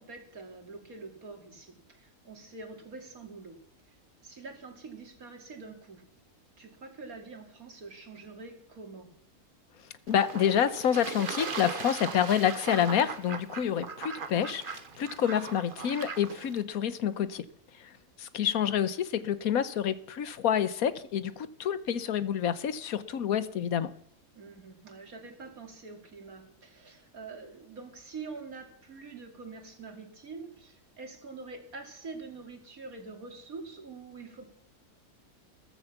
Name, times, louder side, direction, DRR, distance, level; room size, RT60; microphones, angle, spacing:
voice 1, 0.0-3.6 3.9-4.0 4.2-6.0 6.6-9.1 24.4-34.4, right 4 dB, 70° right, 3.1 m, -45 dB
voice 2, 10.1-17.4 17.8-17.9 18.2-23.9, left 9 dB, 75° left, 1.4 m, -28 dB
Fowl / Bird / Water, 10.1-16.6, right 5 dB, 40° right, 1.1 m, -39 dB
14.5 x 14.0 x 7.1 m
omnidirectional pair, 1.5 m